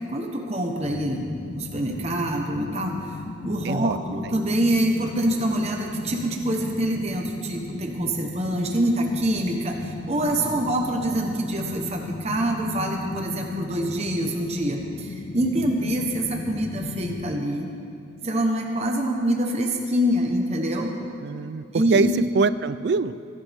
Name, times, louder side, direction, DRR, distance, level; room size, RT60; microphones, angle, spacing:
voice 1, 0.1-3.0 3.4-17.7 18.2-20.9 21.7-22.1, right 1 dB, 35° right, 2 dB, 1.0 m, -25 dB
sound 1, 0.8-17.4, left 3 dB, 40° left, 0.4 m, -36 dB
voice 2, 3.6-4.0 10.4-10.7 21.2-21.6 21.9-22.1 22.3-23.1, right 4 dB, 55° right, 15 dB, 0.4 m, -24 dB
20.5 x 11.5 x 3.6 m, 2.7 s
head